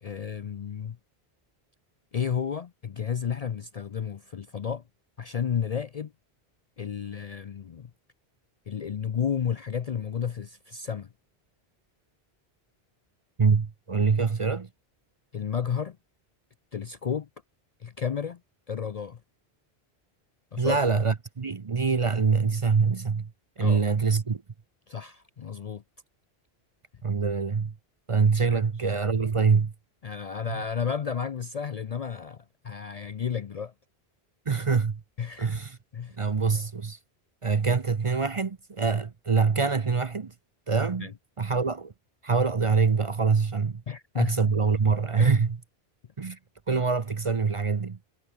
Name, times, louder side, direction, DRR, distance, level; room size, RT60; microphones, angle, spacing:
voice 1, 0.0-1.0 2.1-4.8 5.2-6.1 6.8-7.9 8.7-11.1 15.3-16.0 16.7-17.3 17.8-18.4 18.7-19.2 20.5-20.8 23.6-23.8 24.9-25.8 28.5-28.6 30.0-33.7 34.5-34.6 35.2-35.6 35.9-36.2 41.0-41.1 43.9-44.5 45.2-45.4, left 7 dB, 50° left, 0.5 m, -32 dB
voice 2, 13.4-14.7 20.6-23.3 23.6-24.4 27.0-27.7 28.1-29.7 34.5-35.0 35.4-35.8 36.2-37.0 37.4-40.3 40.7-41.1 41.4-41.9 42.2-43.8 44.1-45.6 46.2-46.4 46.7-48.0, right 5 dB, 35° right, 0.7 m, -24 dB
omnidirectional pair, 1.1 m